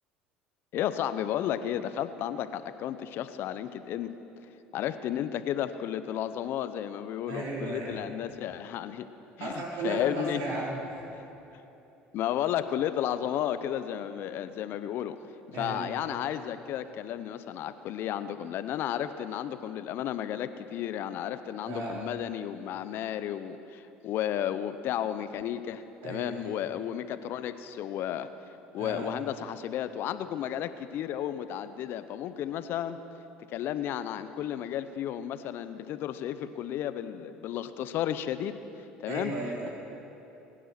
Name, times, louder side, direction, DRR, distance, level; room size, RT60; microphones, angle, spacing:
voice 1, 0.7-4.1 4.7-9.1 9.4-10.4 12.1-15.2 15.5-28.3 28.7-33.0 33.5-38.5 39.0-39.3 39.6-39.7, left 10 dB, 60° left, 12 dB, 0.7 m, -33 dB
voice 2, 7.3-8.0 9.4-11.2 15.5-15.9 21.7-22.0 26.0-26.5 28.8-29.1 39.1-39.7, right 2 dB, 75° right, -4 dB, 4.6 m, -35 dB
21.5 x 10.0 x 5.9 m, 3.0 s
supercardioid pair, 80°, 4 cm